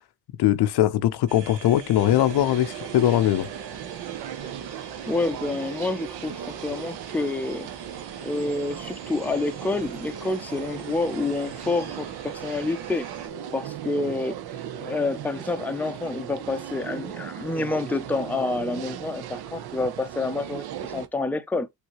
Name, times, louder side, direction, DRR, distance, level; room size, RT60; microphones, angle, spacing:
voice 1, 0.4-3.5, left 12 dB, 70° left, 0.7 m, -21 dB
sound 1, 1.3-13.3, right 6 dB, 85° right, 2.0 m, -43 dB
sound 2, 2.0-21.1, right 10 dB, 65° right, 0.8 m, -37 dB
voice 2, 5.1-7.7 8.2-13.1 13.5-14.4 14.8-21.7, left 3 dB, 5° left, 0.6 m, -28 dB
6.4 x 2.8 x 3.0 m
cardioid pair, 75°, 41 cm